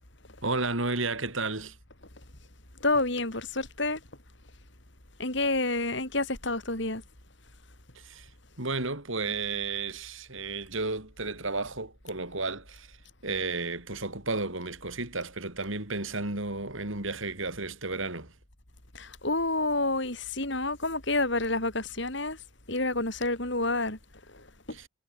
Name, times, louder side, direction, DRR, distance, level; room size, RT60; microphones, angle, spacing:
voice 1, 0.4-1.8 7.9-8.3 8.6-13.0 13.2-18.3 24.7-24.9, right 3 dB, 70° right, 4.5 m, -33 dB
voice 2, 2.8-4.0 5.2-7.0 18.9-22.4 22.7-24.0 24.3-24.8, left 2 dB, 55° left, 5.2 m, -29 dB
head